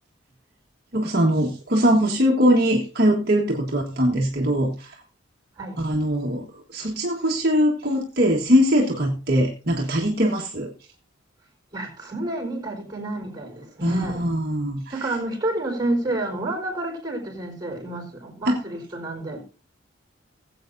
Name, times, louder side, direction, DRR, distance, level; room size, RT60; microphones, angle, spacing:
voice 1, 0.9-5.0 5.8-10.7 13.8-15.1 18.4-18.6, equal, 50° right, -1 dB, 1.5 m, -21 dB
voice 2, 11.7-14.3 14.9-19.4, right 2 dB, 20° right, 1 dB, 4.4 m, -29 dB
20.0 x 8.0 x 2.6 m, 0.34 s
head